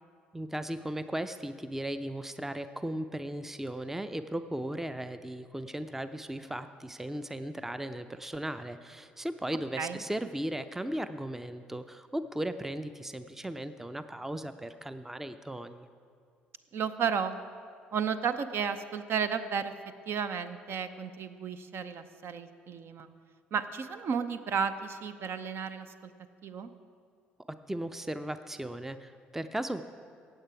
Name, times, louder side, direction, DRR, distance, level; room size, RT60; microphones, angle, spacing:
voice 1, 0.3-15.9 27.7-29.8, right 1 dB, 5° right, 11 dB, 0.5 m, -36 dB
voice 2, 16.7-17.3 17.9-19.7 20.1-23.1 23.5-26.1 26.4-26.7, right 6 dB, 50° right, 11 dB, 0.6 m, -33 dB
15.5 x 8.7 x 4.8 m, 2.2 s
figure-of-eight pair, 50°, 5 cm